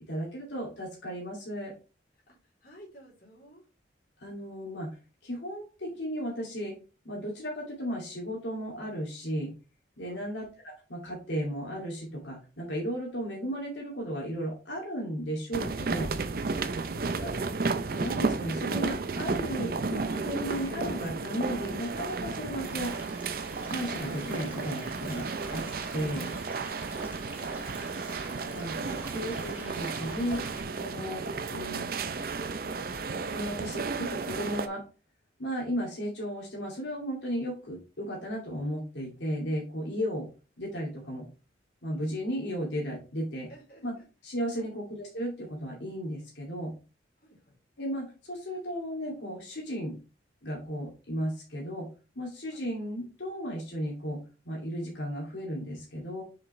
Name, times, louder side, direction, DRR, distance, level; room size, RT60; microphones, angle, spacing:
voice 1, 0.1-1.7 4.2-5.0 5.2-6.7 7.0-9.5 10.0-16.1 17.2-17.3 17.9-22.9 23.6-25.7 25.9-26.3 27.9-30.4 30.7-31.2 31.5-31.9 33.3-34.8 35.4-40.3 40.6-41.3 41.8-43.5 43.8-43.9 44.2-46.7 47.8-49.9 50.4-51.9 52.2-54.2 54.5-56.2, equal, 90° left, -2 dB, 2.4 m, -35 dB
voice 2, 2.6-3.6 10.0-10.3 43.5-44.0 44.5-44.8 47.2-47.6 52.5-52.7, equal, 55° left, -3 dB, 3.5 m, -54 dB
sound 1, 15.5-34.7, right 4 dB, 55° right, 0.6 m, -33 dB
sound 2, 22.6-30.6, right 2 dB, 10° right, 1.7 m, -47 dB
6.7 x 5.2 x 3.2 m, 0.33 s
head